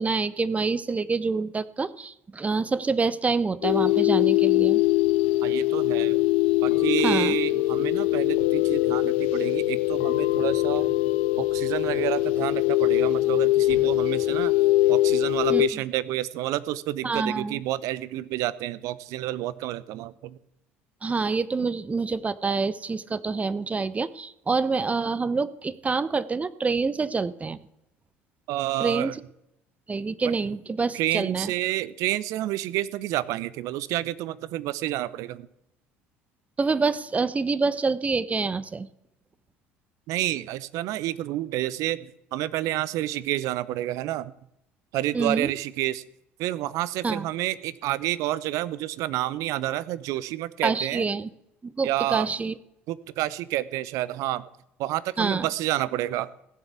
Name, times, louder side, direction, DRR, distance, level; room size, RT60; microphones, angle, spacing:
voice 1, 0.0-4.8 7.0-7.4 15.5-15.6 17.0-17.6 21.0-27.6 28.8-29.2 29.9-31.5 36.6-38.9 45.1-45.5 47.0-47.3 50.6-51.3 51.6-52.5 55.2-55.5, right 4 dB, 20° right, 16 dB, 0.9 m, -26 dB
sound 1, 3.6-15.7, left 17 dB, 70° left, 0.6 m, -22 dB
voice 2, 5.4-6.2 6.6-11.0 11.4-14.5 14.9-20.4 28.5-29.2 30.2-30.3 30.9-35.5 40.1-44.3 44.9-46.0 46.4-51.1 51.8-52.3 52.9-54.5 54.8-56.3, right 15 dB, 60° right, 18 dB, 0.7 m, -29 dB
16.5 x 7.3 x 8.3 m, 0.81 s
hypercardioid pair, 65°, 6 cm